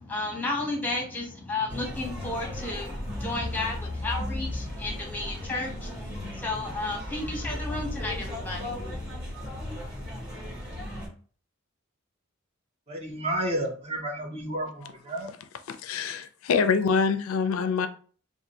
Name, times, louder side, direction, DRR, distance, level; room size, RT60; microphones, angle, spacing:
voice 1, 0.0-9.1, left 2 dB, 10° left, 0 dB, 0.9 m, -33 dB
sound 1, 1.7-11.1, left 1 dB, 55° right, 1.6 m, -35 dB
voice 2, 12.9-15.3, right 1 dB, 30° right, 2 dB, 0.7 m, -31 dB
voice 3, 15.7-17.9, left 5 dB, 80° left, 9 dB, 0.4 m, -25 dB
2.6 x 2.5 x 4.0 m, 0.43 s
head